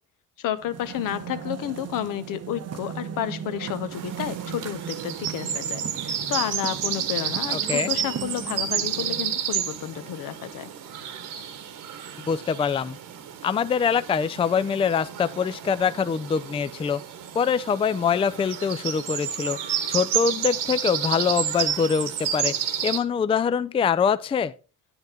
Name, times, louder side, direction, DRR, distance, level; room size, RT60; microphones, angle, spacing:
voice 1, 0.4-10.7, left 11 dB, 70° left, 0.9 m, -31 dB
sound 1, 0.6-9.5, right 9 dB, 50° right, 0.8 m, -37 dB
sound 2, 3.9-23.0, right 9 dB, 70° right, 1.4 m, -31 dB
voice 2, 7.5-7.9 12.3-13.0 13.4-17.0 17.3-19.6 19.9-22.5 22.8-24.5, left 6 dB, 15° left, 0.4 m, -24 dB
9.0 x 8.0 x 3.7 m
supercardioid pair, 85°, 34 cm